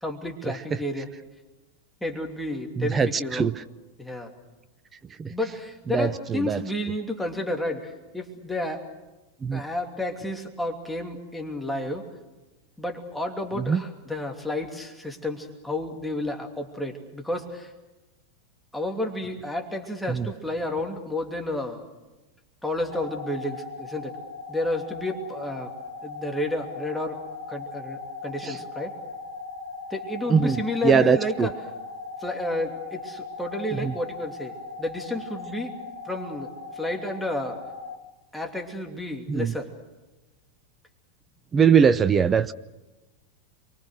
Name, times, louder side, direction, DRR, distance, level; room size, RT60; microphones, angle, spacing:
voice 1, 0.0-1.1 2.0-3.5 4.0-4.3 5.3-8.8 9.5-12.0 12.8-17.7 18.7-21.8 22.6-24.2 24.5-25.7 26.0-27.2 27.5-28.9 29.9-31.6 32.2-35.7 36.0-37.6 38.3-39.7, left 1 dB, 5° left, 2 dB, 2.8 m, -31 dB
voice 2, 2.8-3.5 5.2-5.3 5.9-6.6 9.4-9.6 13.7-13.8 20.1-20.3 28.4-28.5 30.3-31.5 33.8-33.9 39.3-39.5 41.5-42.5, right 6 dB, 20° right, 14 dB, 0.7 m, -21 dB
sound 1, 22.9-37.9, left 4 dB, 80° left, 2.5 m, -39 dB
28.5 x 24.0 x 6.5 m, 1.1 s
figure-of-eight pair, 90°, 0 cm